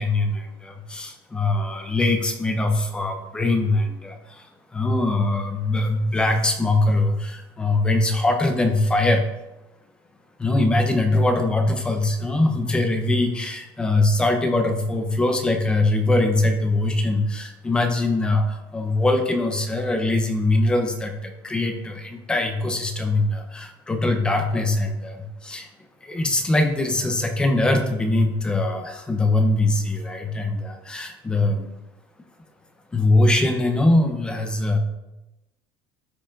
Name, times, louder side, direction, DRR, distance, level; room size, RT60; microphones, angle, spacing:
voice 1, 0.0-4.5 4.7-9.2 10.4-25.7 26.0-31.7 32.9-34.8, left 2 dB, 10° left, 4 dB, 0.7 m, -22 dB
13.0 x 5.6 x 2.5 m, 0.97 s
cardioid pair, 175°, 9 cm